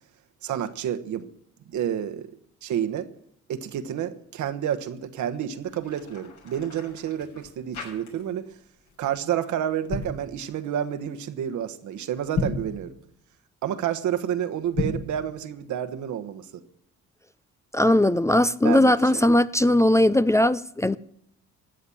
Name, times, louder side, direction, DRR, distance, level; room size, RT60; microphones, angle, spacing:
voice 1, 0.4-1.3 1.7-2.3 2.6-3.1 3.5-8.5 9.0-12.9 13.6-16.6 18.6-19.2, right 10 dB, 75° right, 1.3 m, -29 dB
sound 1, 5.6-8.5 8.8-9.1 9.7-10.2 12.2-12.7 14.6-15.1, left 3 dB, 75° left, 7.0 m, -33 dB
voice 2, 17.7-21.0, left 1 dB, 10° left, 0.5 m, -19 dB
15.5 x 9.4 x 7.3 m
cardioid pair, 90°, 30 cm